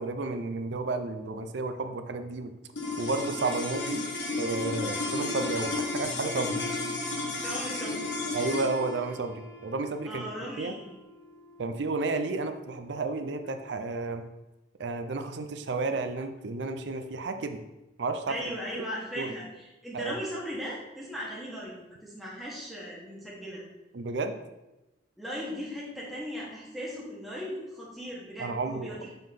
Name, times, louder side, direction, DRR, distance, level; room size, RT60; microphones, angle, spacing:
voice 1, 0.0-2.5 3.0-4.1 4.4-6.6 8.3-10.3 10.6-10.7 11.6-14.2 14.8-17.6 18.0-18.4 19.2-19.3 19.9-20.1 23.9-24.3 28.4-29.0, right 3 dB, 70° right, 7 dB, 0.5 m, -32 dB
sound 1, 2.7-13.2, left 3 dB, 85° left, 1.3 m, -34 dB
Piano, 6.0-10.4, left 1 dB, 45° left, 1.8 m, -50 dB
voice 2, 7.4-8.2 10.0-11.0 18.3-21.8 22.0-23.6 25.2-29.1, equal, ahead, -7 dB, 1.2 m, -38 dB
5.4 x 3.7 x 5.8 m, 1.0 s
head